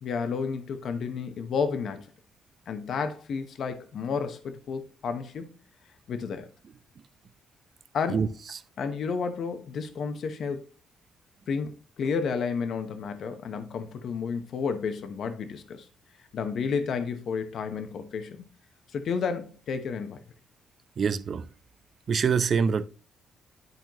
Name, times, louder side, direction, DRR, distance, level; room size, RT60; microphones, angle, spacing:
voice 1, 0.0-2.1 2.7-5.5 6.1-6.5 7.9-8.3 8.8-10.7 11.5-11.7 12.0-15.9 16.3-18.5 18.9-20.2, left 5 dB, 65° left, 1.0 m, -31 dB
voice 2, 21.0-21.4 22.1-22.8, right 6 dB, 50° right, 0.5 m, -24 dB
11.0 x 4.4 x 3.0 m
cardioid pair, 90°, 0 cm